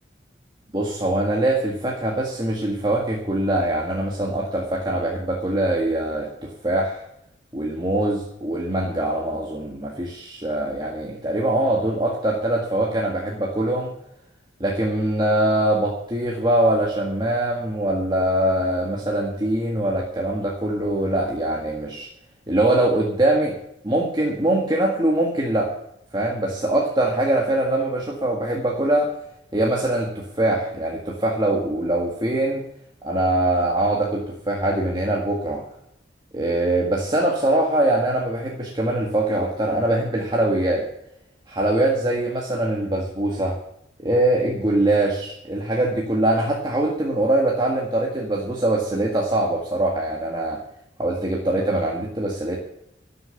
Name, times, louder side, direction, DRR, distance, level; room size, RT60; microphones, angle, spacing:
voice 1, 0.7-7.0 7.5-13.9 14.6-22.1 22.5-23.6 23.8-25.7 26.1-29.1 29.5-32.6 33.0-35.6 36.3-40.9 41.5-43.6 44.0-50.6 51.0-52.6, right 1 dB, 25° right, -1 dB, 1.8 m, -23 dB
13.0 x 7.0 x 8.1 m, 0.76 s
head